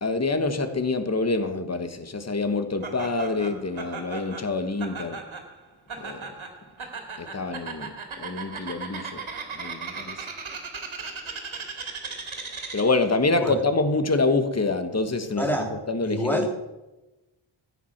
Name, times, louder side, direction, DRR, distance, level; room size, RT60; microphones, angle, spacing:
voice 1, 0.0-5.2 6.0-6.3 7.2-7.9 8.2-9.2 9.5-10.2 12.7-16.5, left 3 dB, 30° left, 1.3 m, -26 dB
Laughter, 2.8-13.1, right 4 dB, 80° right, 2.4 m, -37 dB
voice 2, 15.4-15.7 16.0-16.5, equal, 5° left, 2.6 m, -26 dB
14.5 x 9.6 x 5.9 m
wide cardioid pair, 125°, 48 cm